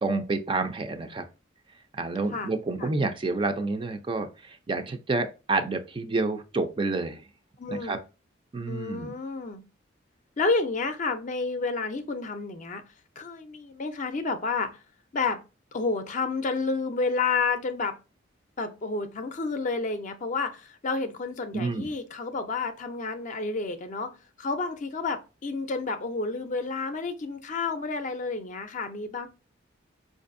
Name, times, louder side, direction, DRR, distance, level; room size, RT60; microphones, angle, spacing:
voice 1, 0.0-1.3 1.9-7.2 7.7-8.0 8.5-9.1 21.5-21.9, right 3 dB, 25° right, 0.4 m, -29 dB
voice 2, 7.6-8.0 8.7-9.6 10.4-12.8 13.2-14.7 15.1-15.4 15.7-18.0 18.6-24.1 24.4-29.3, left 4 dB, 40° left, 0.5 m, -30 dB
4.7 x 2.5 x 2.5 m
head